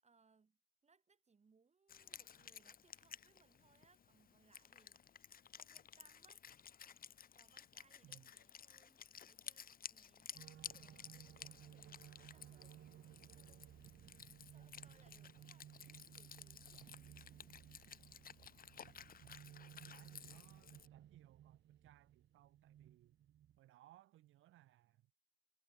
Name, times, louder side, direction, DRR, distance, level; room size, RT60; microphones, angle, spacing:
voice 1, 0.0-6.4 7.3-12.8 13.3-13.9 14.5-15.7 16.1-17.0, right 5 dB, 35° right, 5.4 m, -73 dB
Wind instrument woodwind instrument, 1.9-20.9, left 8 dB, 45° left, 1.2 m, -56 dB
sound 1, 10.3-23.6, right 11 dB, 70° right, 2.2 m, -59 dB
voice 2, 19.7-23.2 23.6-25.1, right 15 dB, 85° right, 2.4 m, -66 dB
cardioid pair, 90°, 20 cm